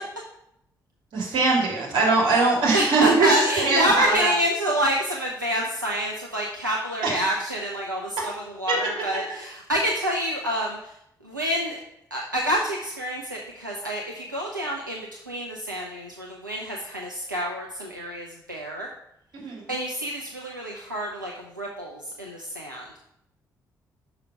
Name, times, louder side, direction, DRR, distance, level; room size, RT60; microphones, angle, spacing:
voice 1, 1.1-3.3 3.6-4.3 8.7-8.8 19.3-19.6, right 3 dB, 55° right, -3 dB, 2.8 m, -21 dB
voice 2, 2.3-11.0 11.2-11.8 12.1-18.9 19.7-23.1, equal, 90° right, -2 dB, 0.5 m, -28 dB
5.8 x 5.6 x 5.0 m, 0.78 s
figure-of-eight pair, 40°, 10 cm